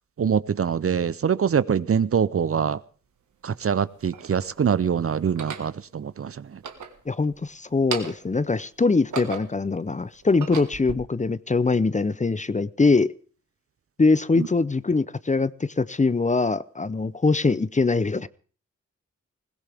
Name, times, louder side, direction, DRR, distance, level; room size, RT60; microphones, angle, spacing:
voice 1, 0.2-2.8 3.4-6.3, right 7 dB, 50° right, 18 dB, 0.6 m, -24 dB
sound 1, 2.7-2.8 3.7-4.5 5.2-5.7 6.5-7.4 7.7-8.4 8.8-9.7 10.2-11.0, right 6 dB, 80° right, 1.7 m, -35 dB
voice 2, 7.1-13.1 14.0-18.3, left 3 dB, 25° left, 18 dB, 0.6 m, -23 dB
20.5 x 16.5 x 3.5 m, 0.39 s
cardioid pair, 50°, 29 cm